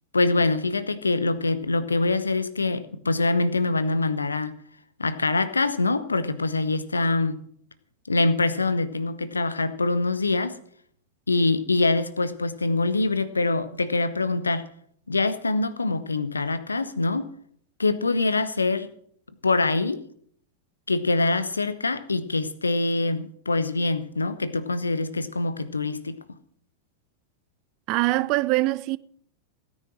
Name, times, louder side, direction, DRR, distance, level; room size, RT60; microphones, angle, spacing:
voice 1, 0.1-4.5 5.0-7.4 8.1-10.6 11.3-14.7 15.1-17.3 17.8-18.9 19.4-20.0 20.9-26.2, left 3 dB, 80° left, 0.9 m, -24 dB
voice 2, 27.9-29.0, right 20 dB, 40° right, 0.5 m, -23 dB
16.5 x 9.7 x 6.1 m
figure-of-eight pair, 90°, 0 cm